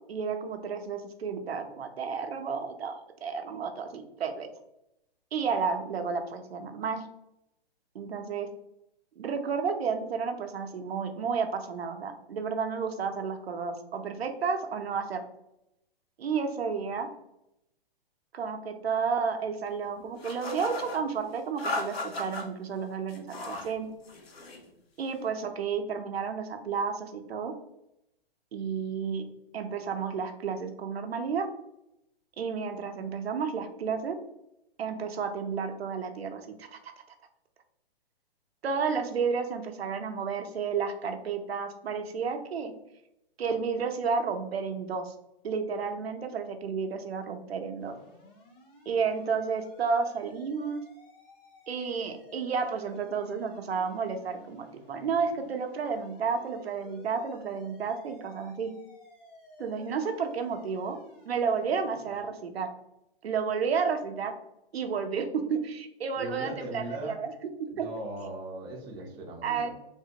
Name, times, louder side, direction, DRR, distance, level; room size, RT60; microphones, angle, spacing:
voice 1, 0.1-4.5 5.3-7.1 7.9-8.5 9.2-15.2 16.2-17.1 18.3-23.9 25.0-27.5 28.5-31.5 32.4-34.2 34.8-36.9 38.6-42.7 43.4-45.1 45.4-47.9 48.9-50.8 51.7-58.7 59.6-61.0 61.3-62.7 63.2-64.3 64.7-67.3 67.8-67.9 69.4-69.7, right 5 dB, 90° right, 6 dB, 0.6 m, -31 dB
sound 1, 20.2-21.0 21.6-22.4 23.1-23.7 24.0-24.6, left 2 dB, 90° left, 0.8 m, -35 dB
sound 2, 47.8-62.2, left 2 dB, 60° left, 1.4 m, -54 dB
voice 2, 66.1-67.2 67.7-69.7, right 1 dB, 15° right, 0 dB, 0.4 m, -39 dB
3.3 x 2.1 x 2.7 m, 0.83 s
hypercardioid pair, 130°, 30 cm